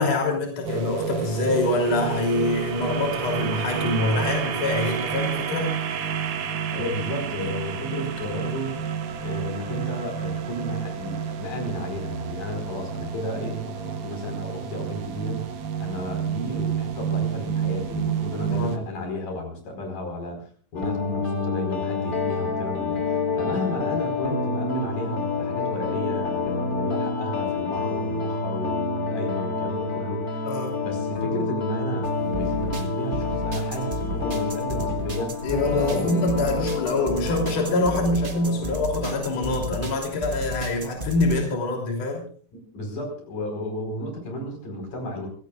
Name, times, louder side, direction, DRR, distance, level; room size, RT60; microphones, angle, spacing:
voice 1, 0.0-5.7 18.5-18.8 30.4-30.8 35.4-42.3, left 2 dB, 55° left, 1 dB, 4.3 m, -25 dB
sound 1, 0.6-18.8, right 7 dB, 80° right, 3.0 m, -29 dB
voice 2, 6.7-8.8 9.2-20.4 20.7-30.5 30.8-36.1 37.7-37.8 42.7-45.3, left 1 dB, 85° left, 3 dB, 6.3 m, -33 dB
sound 2, 20.7-39.6, left 3 dB, 30° left, 3.1 m, -28 dB
sound 3, 32.0-41.4, right 1 dB, 65° right, 0.5 m, -33 dB
27.5 x 16.5 x 2.4 m, 0.43 s
omnidirectional pair, 3.6 m